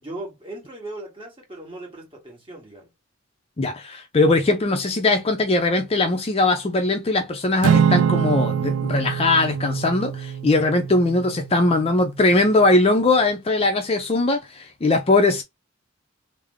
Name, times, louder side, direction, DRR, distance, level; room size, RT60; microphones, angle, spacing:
voice 1, 0.0-2.9, right 2 dB, 25° right, 1.6 m, -38 dB
voice 2, 3.6-15.4, left 2 dB, 30° left, 0.5 m, -20 dB
Acoustic guitar / Strum, 7.6-12.1, right 7 dB, 90° right, 0.3 m, -24 dB
3.5 x 2.0 x 3.5 m
head